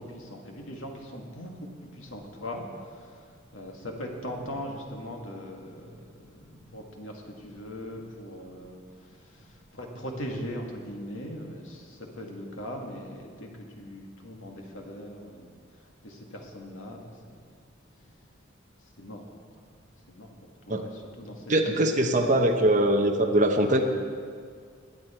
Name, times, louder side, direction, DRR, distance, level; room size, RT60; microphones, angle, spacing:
voice 1, 0.0-17.4 18.8-19.2 19.5-19.6 20.1-20.3 20.7-22.6, equal, 85° left, 1 dB, 2.1 m, -40 dB
voice 2, 21.5-23.8, right 1 dB, 40° right, 2 dB, 0.9 m, -22 dB
21.5 x 9.4 x 4.5 m, 2.1 s
head